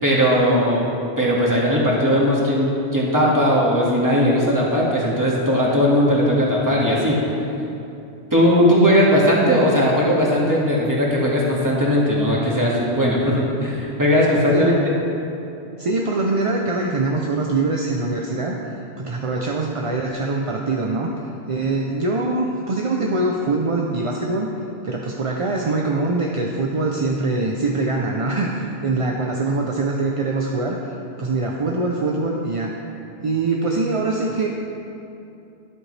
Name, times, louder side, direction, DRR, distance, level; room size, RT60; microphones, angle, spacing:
voice 1, 0.0-0.9 1.2-7.3 8.3-14.9, equal, 15° right, -5 dB, 1.9 m, -18 dB
voice 2, 14.5-14.9 15.8-18.6 19.0-21.1 21.5-24.5 24.8-30.8 31.2-32.7 33.2-34.5, right 3 dB, 40° right, 0 dB, 0.6 m, -23 dB
12.0 x 11.0 x 3.3 m, 2.8 s
omnidirectional pair, 1.1 m